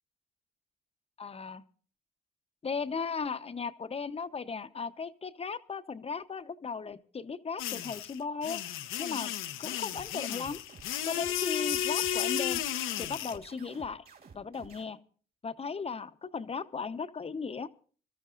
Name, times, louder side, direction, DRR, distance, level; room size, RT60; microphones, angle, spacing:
voice 1, 1.2-1.6 2.6-8.6 9.0-9.3 9.6-10.6 11.1-12.6 13.0-14.0 14.3-15.0 15.4-17.7, left 5 dB, 30° left, 11 dB, 0.8 m, -36 dB
sound 1, 7.6-13.4, left 10 dB, 85° left, 0.9 m, -33 dB
sound 2, 9.9-14.9, right 5 dB, 50° right, 3.7 m, -53 dB
27.0 x 13.5 x 2.5 m, 0.41 s
cardioid pair, 90°, 20 cm